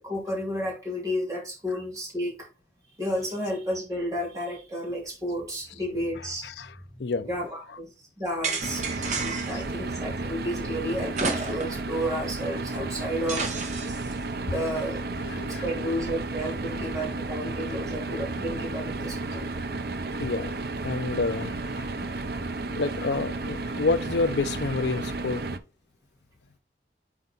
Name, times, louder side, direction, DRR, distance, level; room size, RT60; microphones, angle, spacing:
voice 1, 0.0-2.5 3.0-6.5 6.9-7.0 7.3-13.5 14.4-15.0 15.5-19.6 22.0-22.1, equal, 20° right, 2.8 m, -32 dB
voice 2, 6.4-7.3 7.7-7.8 9.0-9.6 13.7-13.9 14.5-14.6 15.1-15.7 20.2-20.5 20.8-22.2 22.8-25.4, left 3 dB, 75° left, 0.5 m, -30 dB
sound 1, 8.4-9.7 11.1-11.9 12.2-12.3 13.3-14.1, right 4 dB, 40° right, 1.2 m, -31 dB
sound 2, 8.6-25.6, right 3 dB, 60° right, 0.6 m, -33 dB
5.8 x 4.4 x 3.8 m
head